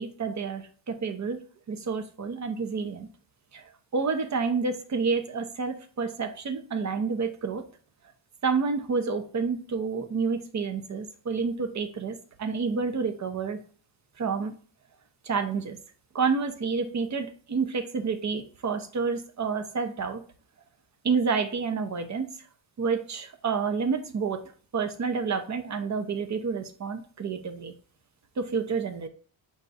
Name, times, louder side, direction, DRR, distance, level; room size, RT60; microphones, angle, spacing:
voice 1, 0.0-1.4 1.7-3.1 3.5-7.6 8.4-13.6 14.2-14.5 15.2-15.8 16.1-20.2 21.0-22.3 22.8-24.4 24.7-27.7 28.4-29.1, right 5 dB, 35° right, 9 dB, 0.6 m, -29 dB
4.7 x 2.2 x 3.9 m, 0.42 s
cardioid pair, 95°, 48 cm